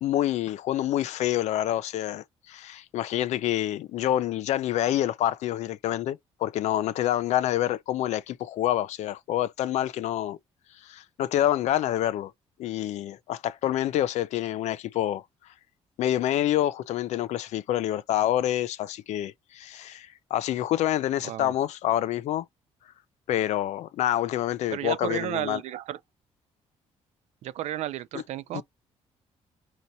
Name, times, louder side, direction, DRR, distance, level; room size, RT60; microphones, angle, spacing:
voice 1, 0.0-10.4 10.8-12.3 12.6-15.2 16.0-22.4 23.3-25.6 28.5-28.6, left 12 dB, 75° left, 0.6 m, -27 dB
voice 2, 24.7-26.0 27.4-28.6, right 12 dB, 75° right, 0.5 m, -32 dB
5.3 x 3.0 x 2.7 m
cardioid pair, 130°, 12 cm